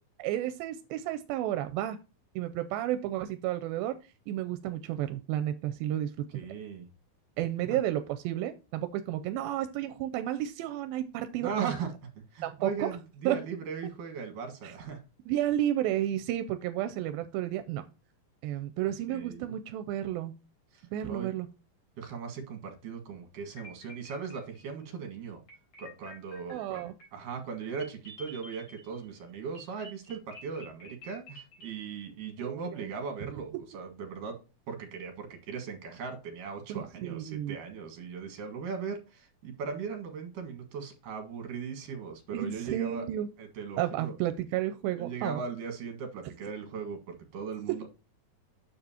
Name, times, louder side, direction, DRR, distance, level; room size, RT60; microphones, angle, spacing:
voice 1, 0.2-2.0 2.4-4.0 4.3-6.1 7.4-11.7 12.4-12.9 13.3-13.4 14.6-14.7 15.3-17.8 18.4-20.3 20.9-21.5 26.5-26.9 32.4-32.9 36.7-37.6 42.3-43.3 43.8-45.4, right 12 dB, 85° right, 9 dB, 2.4 m, -32 dB
voice 2, 6.3-6.9 7.7-7.8 11.4-11.9 12.3-15.0 18.8-19.6 20.7-21.3 22.0-25.4 25.8-34.4 34.7-43.1 43.4-44.2 45.0-47.9, right 5 dB, 65° right, 4 dB, 3.1 m, -39 dB
sound 1, 23.6-24.8 25.5-29.1 29.5-31.7, equal, 40° left, 4.3 m, -50 dB
9.3 x 7.2 x 2.8 m, 0.31 s
omnidirectional pair, 4.2 m